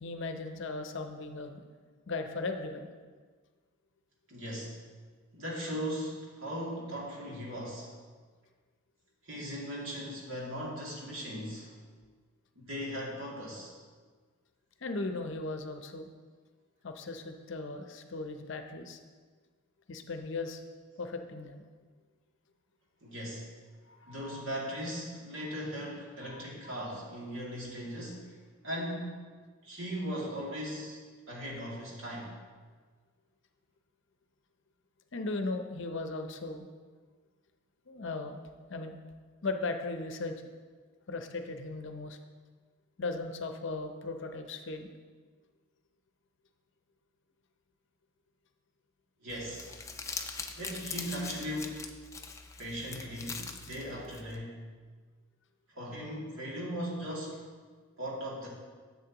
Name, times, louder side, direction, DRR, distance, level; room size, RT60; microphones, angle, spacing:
voice 1, 0.0-1.6 2.1-2.9 14.8-16.1 16.8-19.0 19.9-20.6 21.0-21.6 23.9-24.4 26.3-26.4 35.1-36.7 37.9-38.4 38.7-39.0 39.4-40.4 41.1-42.2 43.0-44.9, left 3 dB, 55° left, 6 dB, 0.6 m, -37 dB
voice 2, 4.3-4.8 5.3-7.9 9.2-11.8 12.6-13.7 23.0-23.4 24.1-28.4 28.6-29.2 29.6-31.0 31.3-32.3 49.2-49.7 50.6-51.8 52.6-54.6 55.7-57.4 58.0-58.5, equal, 65° right, -5 dB, 2.3 m, -38 dB
Crumpling crinkling, 49.3-54.4, left 5 dB, 15° left, 0.4 m, -42 dB
11.0 x 7.2 x 2.9 m, 1.5 s
head